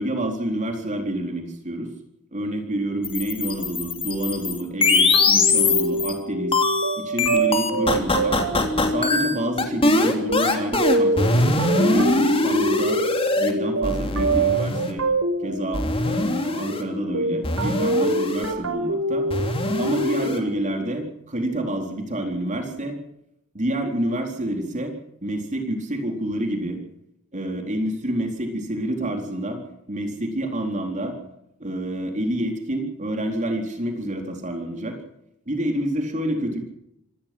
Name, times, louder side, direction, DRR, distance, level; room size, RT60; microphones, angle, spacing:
voice 1, 0.0-1.9 2.3-6.6 7.0-8.4 8.8-13.0 13.4-15.1 15.4-19.3 19.8-23.0 23.5-24.9 25.2-26.8 27.3-29.6 29.9-31.1 31.6-35.0 35.5-36.6, right 1 dB, 35° right, 3 dB, 4.0 m, -28 dB
sound 1, 3.0-6.1 6.5-13.5 13.8-14.9 15.7-16.8 17.4-18.5 19.3-20.4, left 2 dB, 25° left, 3.2 m, -22 dB
sound 2, 5.1-20.5, right 2 dB, 85° right, 5.0 m, -26 dB
25.5 x 19.0 x 6.1 m, 0.82 s
head